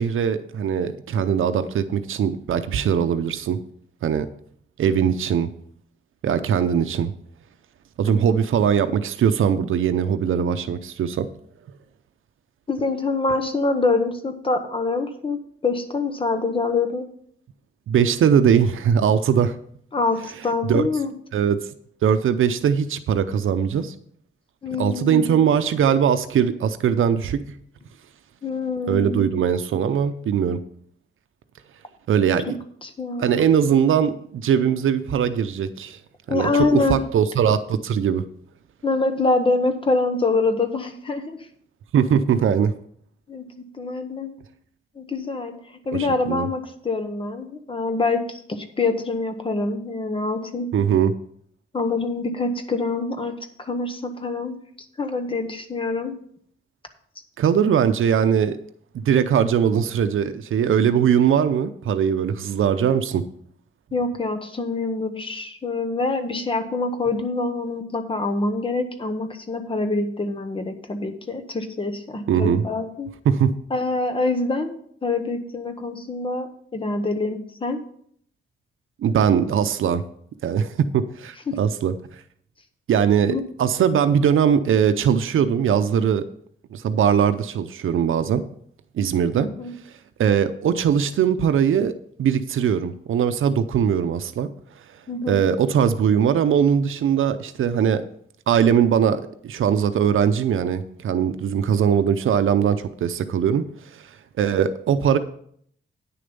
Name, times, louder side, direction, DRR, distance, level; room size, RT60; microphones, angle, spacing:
voice 1, 0.0-3.6 4.0-4.3 4.8-5.5 6.2-7.1 8.0-11.3 17.9-19.6 20.6-20.8 21.3-21.7 22.0-23.9 24.8-27.4 28.9-30.6 32.1-32.6 33.2-36.0 36.3-38.2 41.9-42.7 45.9-46.5 50.7-51.1 57.4-58.6 58.9-63.2 72.3-72.6 73.3-73.5 79.0-80.0 80.4-82.2 82.9-86.2 86.7-88.4 88.9-89.5 89.9-90.0 90.2-94.5 94.8-94.9 95.3-98.0 98.5-105.2, right 8 dB, 90° right, 11 dB, 0.6 m, -21 dB
voice 2, 12.7-17.1 19.9-21.1 24.6-25.4 28.4-29.3 32.8-33.4 36.3-37.0 38.8-41.4 43.3-43.5 43.7-44.4 45.0-50.7 51.7-54.6 55.0-56.2 63.9-73.1 73.7-74.7 75.0-77.8 81.5-81.6 83.3-83.4 89.4-89.7 95.1-95.4, left 3 dB, 25° left, 8 dB, 1.0 m, -25 dB
9.5 x 6.8 x 5.3 m, 0.64 s
wide cardioid pair, 170°, 20 cm